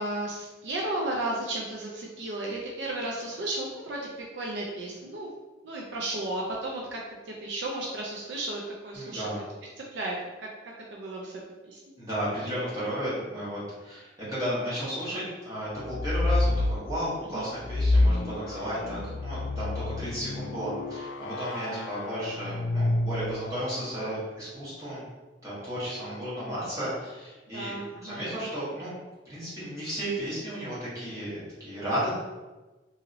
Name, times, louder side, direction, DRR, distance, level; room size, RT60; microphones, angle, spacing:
voice 1, 0.0-5.3 5.6-7.0 7.3-9.4 9.9-11.3 11.6-11.8 17.3-17.5 21.7-21.9 27.5-28.3, right 1 dB, 65° right, -2 dB, 0.4 m, -34 dB
voice 2, 8.9-9.4 12.0-25.0 25.4-27.7 28.0-28.9 29.3-32.1, equal, 20° right, -11 dB, 1.3 m, -33 dB
sound 1, 15.8-16.8 17.6-23.6, left 2 dB, 75° left, 0.3 m, -28 dB
2.9 x 2.7 x 2.5 m, 1.2 s
head